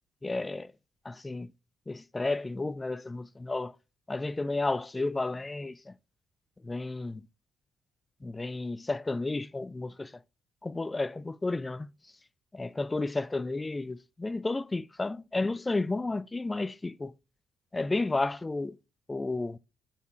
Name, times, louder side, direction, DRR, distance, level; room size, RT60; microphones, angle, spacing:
voice 1, 0.2-0.7 1.0-1.5 1.9-3.8 4.1-5.9 6.6-7.2 8.2-10.2 10.6-11.9 12.5-17.1 17.7-18.8 19.1-19.6, left 2 dB, 20° left, 0.3 m, -32 dB
9.1 x 5.8 x 2.3 m
hypercardioid pair, 50°, 0 cm